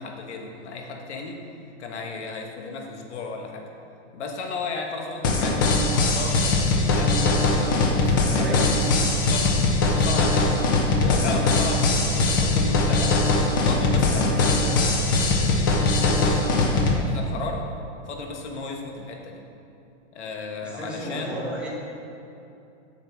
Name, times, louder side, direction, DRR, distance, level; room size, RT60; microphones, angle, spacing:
voice 1, 0.0-1.4 1.8-3.6 4.1-9.6 9.9-10.6 11.0-13.2 13.6-16.4 16.7-17.6 18.0-19.4 20.1-21.6, left 4 dB, 70° left, 1 dB, 1.5 m, -35 dB
sound 1, 5.2-17.0, left 2 dB, 20° left, 0.4 m, -21 dB
voice 2, 8.4-9.1 20.6-21.7, right 1 dB, 5° right, -6 dB, 1.1 m, -33 dB
7.3 x 5.5 x 7.2 m, 2.7 s
supercardioid pair, 175°, 35 cm